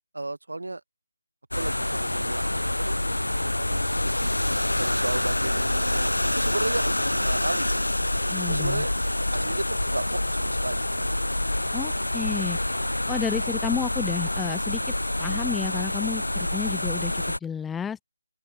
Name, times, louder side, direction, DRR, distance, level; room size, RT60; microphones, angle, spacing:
voice 1, 0.1-0.8 1.5-4.3 4.8-7.8 8.4-8.9 9.3-10.9, right 2 dB, 70° right, 2.4 m, -34 dB
sound 1, 1.5-17.4, left 1 dB, 85° left, 0.3 m, -27 dB
voice 2, 8.3-8.8 11.7-12.6 13.1-14.9 15.2-18.0, left 7 dB, 5° left, 0.8 m, -31 dB
open air
figure-of-eight pair, 160°, 0 cm